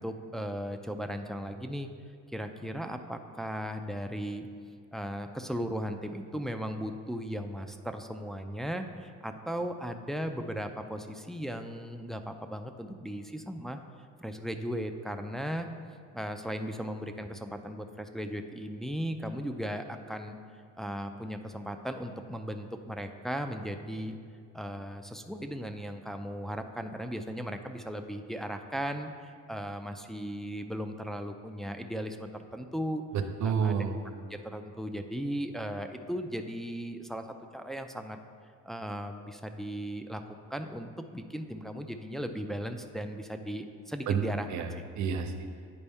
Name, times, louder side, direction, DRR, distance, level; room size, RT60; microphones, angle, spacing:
voice 1, 0.0-1.9 2.3-4.5 4.9-13.8 14.2-15.7 16.1-20.4 20.8-24.1 24.5-33.0 33.4-33.8 34.3-38.2 38.6-44.5, equal, ahead, 5 dB, 0.3 m, -37 dB
voice 2, 33.1-34.0 44.1-44.2 44.5-45.5, right 6 dB, 70° right, 7 dB, 0.6 m, -30 dB
9.7 x 4.2 x 3.5 m, 2.2 s
cardioid pair, 90°, 30 cm